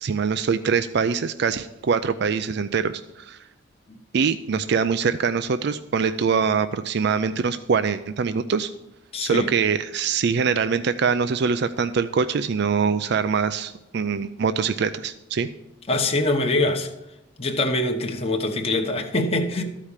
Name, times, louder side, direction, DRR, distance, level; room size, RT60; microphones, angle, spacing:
voice 1, 0.0-3.4 4.1-8.7 9.2-15.5, right 6 dB, 60° right, 0.4 m, -23 dB
voice 2, 9.1-9.5 15.9-16.9 17.4-19.6, left 2 dB, 35° left, 0.9 m, -23 dB
13.5 x 5.0 x 7.2 m
head